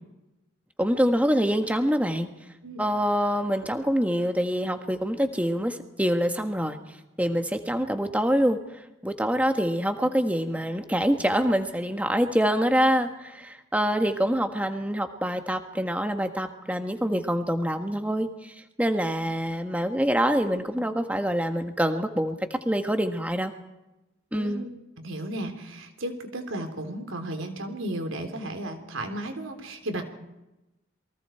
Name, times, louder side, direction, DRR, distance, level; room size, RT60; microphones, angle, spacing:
voice 1, 0.8-2.3 2.8-6.8 7.2-23.5 24.3-24.6, equal, 5° right, 6 dB, 1.5 m, -25 dB
voice 2, 24.3-24.7 25.0-30.0, right 1 dB, 85° right, 6 dB, 3.5 m, -34 dB
28.0 x 23.5 x 4.5 m, 0.98 s
head